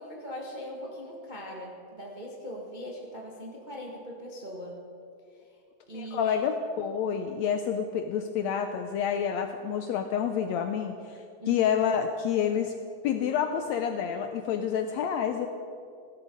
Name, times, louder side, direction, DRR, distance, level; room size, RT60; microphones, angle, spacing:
voice 1, 0.0-4.8 5.9-6.4 11.4-11.7, equal, 30° right, -2 dB, 0.8 m, -40 dB
voice 2, 5.9-12.7 13.0-15.5, left 8 dB, 75° left, 6 dB, 1.6 m, -28 dB
15.0 x 12.5 x 5.4 m, 2.4 s
omnidirectional pair, 3.7 m